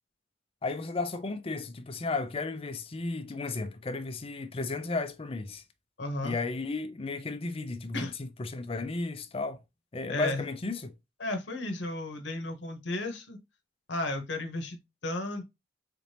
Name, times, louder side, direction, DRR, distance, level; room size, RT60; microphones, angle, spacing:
voice 1, 0.6-5.6 6.2-9.6 9.9-10.9, left 3 dB, 30° left, 0.5 m, -34 dB
voice 2, 6.0-6.4 7.9-8.1 10.1-10.4 11.2-13.4 13.9-15.4, left 2 dB, 75° left, 0.9 m, -34 dB
4.1 x 2.8 x 3.3 m
head